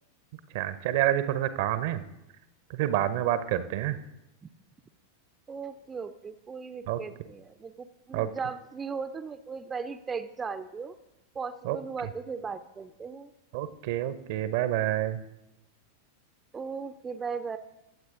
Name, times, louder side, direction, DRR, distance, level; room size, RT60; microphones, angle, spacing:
voice 1, 0.5-2.0 2.7-4.0 6.9-7.0 8.1-8.3 11.6-11.8 13.5-15.2, right 12 dB, 50° right, 13 dB, 0.8 m, -28 dB
voice 2, 5.5-10.9 11.3-13.3 16.5-17.6, right 5 dB, 15° right, 9 dB, 0.6 m, -37 dB
22.5 x 7.8 x 3.8 m, 0.94 s
figure-of-eight pair, 90°, 0 cm